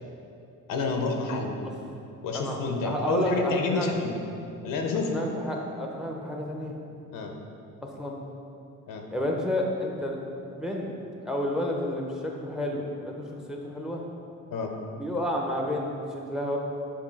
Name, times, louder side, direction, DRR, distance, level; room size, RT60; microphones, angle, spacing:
voice 1, 0.7-1.6 2.2-4.2 4.6-5.2 7.1-7.3 8.9-9.1 14.5-14.7, left 3 dB, 80° left, 3 dB, 0.8 m, -29 dB
voice 2, 2.8-3.9 5.1-6.7 7.8-8.2 9.1-10.2 10.4-10.9 11.2-14.0 14.9-16.6, left 1 dB, ahead, 0 dB, 0.6 m, -30 dB
7.3 x 2.7 x 5.2 m, 2.7 s
cardioid pair, 115°, 32 cm